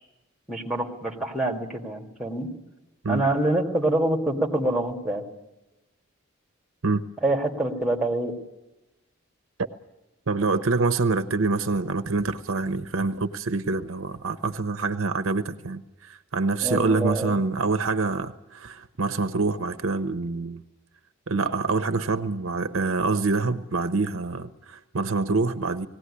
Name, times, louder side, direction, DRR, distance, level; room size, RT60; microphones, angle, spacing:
voice 1, 0.5-2.5 3.1-5.2 7.2-8.3 16.6-17.4, right 1 dB, ahead, 1 dB, 2.0 m, -26 dB
voice 2, 10.3-20.6 21.3-25.9, right 3 dB, 70° right, 11 dB, 0.8 m, -26 dB
19.5 x 17.0 x 9.8 m, 1.0 s
head